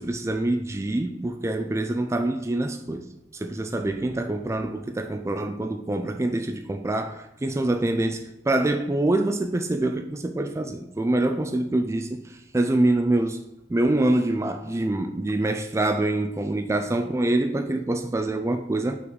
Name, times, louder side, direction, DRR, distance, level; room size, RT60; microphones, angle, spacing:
voice 1, 0.0-3.1 3.3-13.4 13.7-19.0, right 2 dB, 15° right, 0.3 m, -25 dB
5.9 x 4.1 x 4.6 m
head